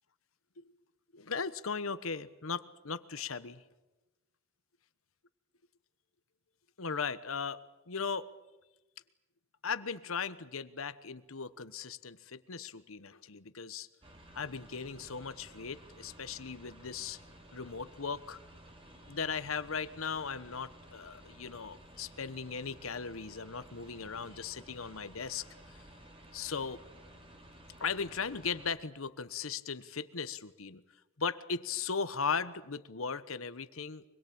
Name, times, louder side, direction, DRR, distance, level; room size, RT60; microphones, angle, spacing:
voice 1, 1.1-3.6 6.8-8.3 9.6-13.9 14.3-17.2 17.5-18.4 19.1-25.5 26.3-26.8 27.8-30.8 31.2-34.0, left 5 dB, 85° left, 14 dB, 1.1 m, -38 dB
sound 1, 14.0-28.7, right 1 dB, 25° right, 2.9 m, -55 dB
25.0 x 21.5 x 8.7 m, 1.0 s
head